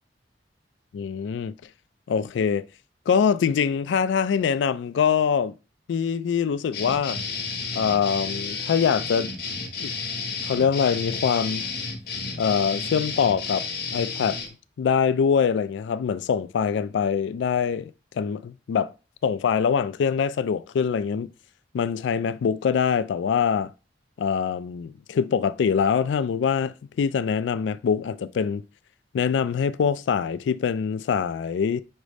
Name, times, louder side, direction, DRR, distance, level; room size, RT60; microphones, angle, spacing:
voice 1, 0.9-1.5 2.1-2.7 3.1-5.5 5.9-7.2 7.7-9.3 9.8-9.9 10.5-11.7 12.4-13.7 13.9-14.4 14.8-18.9 19.2-21.3 21.7-23.7 24.2-28.6 29.1-31.8, left 6 dB, 80° left, 0.3 m, -24 dB
sound 1, 6.7-14.5, left 4 dB, 60° left, 0.9 m, -32 dB
5.3 x 2.0 x 4.8 m
head